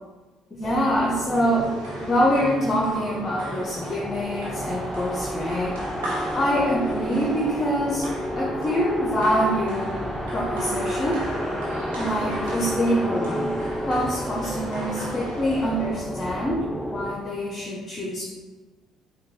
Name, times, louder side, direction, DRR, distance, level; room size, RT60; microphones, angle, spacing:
voice 1, 0.5-1.7 2.0-5.8 6.3-8.1 8.3-10.0 10.3-11.2 12.0-13.5 13.9-18.3, equal, 35° left, -2 dB, 0.7 m, -25 dB
sound 1, 0.6-17.1, equal, ahead, 0.3 m, -31 dB
sound 2, 1.3-16.1, right 1 dB, 90° right, 0.9 m, -38 dB
4.9 x 2.3 x 3.1 m, 1.2 s
hypercardioid pair, 65°, 0 cm